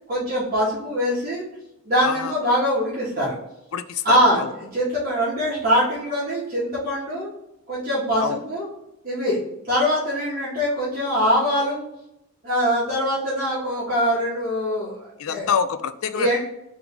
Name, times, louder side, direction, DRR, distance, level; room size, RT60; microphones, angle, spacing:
voice 1, 0.1-1.4 1.8-3.4 4.0-7.3 7.7-8.7 9.0-9.4 9.7-11.8 12.4-15.5 16.1-16.4, equal, 40° right, -9 dB, 1.6 m, -23 dB
voice 2, 2.0-2.3 3.7-4.5 8.2-8.4 15.2-16.4, left 7 dB, 75° left, 11 dB, 0.4 m, -26 dB
3.5 x 3.5 x 3.7 m, 0.83 s
head